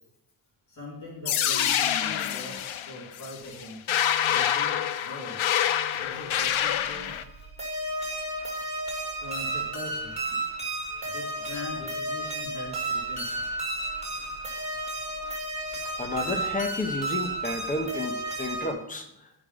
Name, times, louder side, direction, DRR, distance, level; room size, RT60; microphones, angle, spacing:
voice 1, 0.7-3.9 4.3-4.8 5.0-5.4 5.9-7.5 9.1-10.4 11.1-13.4, left 1 dB, 40° left, -8 dB, 3.6 m, -42 dB
sound 1, 1.2-7.2, left 10 dB, 85° left, 0.8 m, -26 dB
sound 2, 6.0-18.7, right 2 dB, 15° right, 2.3 m, -33 dB
voice 2, 16.0-19.3, left 2 dB, 15° left, 4 dB, 1.0 m, -31 dB
12.5 x 5.2 x 5.4 m, 0.81 s
cardioid pair, 170°, 46 cm